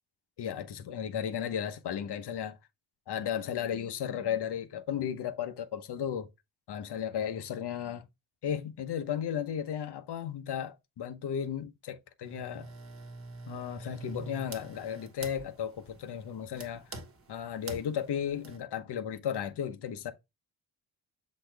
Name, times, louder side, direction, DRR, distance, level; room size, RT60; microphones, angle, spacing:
voice 1, 0.4-2.6 3.1-6.3 6.7-8.0 8.4-12.7 13.5-16.9 17.3-20.1, left 9 dB, 70° left, 1.0 m, -35 dB
sound 1, 12.2-18.6, right 2 dB, 35° right, 1.3 m, -46 dB
7.4 x 4.2 x 3.4 m
wide cardioid pair, 120°, 41 cm